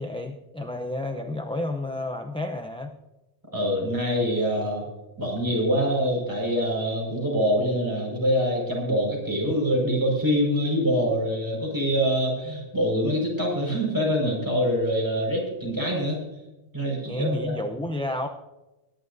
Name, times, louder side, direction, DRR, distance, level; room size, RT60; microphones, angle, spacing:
voice 1, 0.0-2.9 17.0-18.3, left 2 dB, 5° left, 4 dB, 0.5 m, -31 dB
voice 2, 3.5-4.8 5.2-16.2 16.7-17.5, equal, 15° right, -2 dB, 5.3 m, -25 dB
22.0 x 11.0 x 2.7 m, 1.0 s
omnidirectional pair, 1.1 m